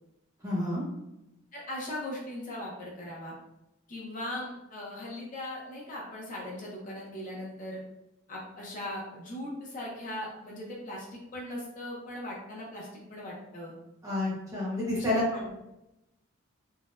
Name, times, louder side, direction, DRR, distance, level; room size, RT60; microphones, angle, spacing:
voice 1, 0.4-0.8 14.0-15.2, left 1 dB, 15° right, -6 dB, 0.9 m, -29 dB
voice 2, 1.5-3.3 3.9-7.8 8.3-13.7 14.9-15.5, left 1 dB, 35° left, -3 dB, 0.6 m, -39 dB
3.8 x 2.1 x 2.5 m, 0.90 s
head